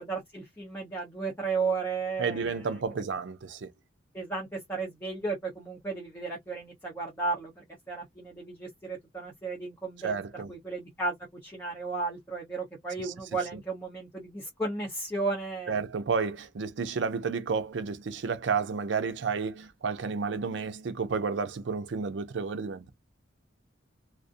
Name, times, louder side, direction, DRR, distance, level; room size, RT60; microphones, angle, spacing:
voice 1, 0.0-2.6 4.1-7.5 7.9-10.2 10.5-11.1 11.4-15.8, right 3 dB, 10° left, 0.8 m, -34 dB
voice 2, 2.2-3.7 10.0-10.5 13.0-13.1 13.5-13.6 15.7-22.9, right 5 dB, 65° right, 0.5 m, -31 dB
2.4 x 2.0 x 2.5 m
head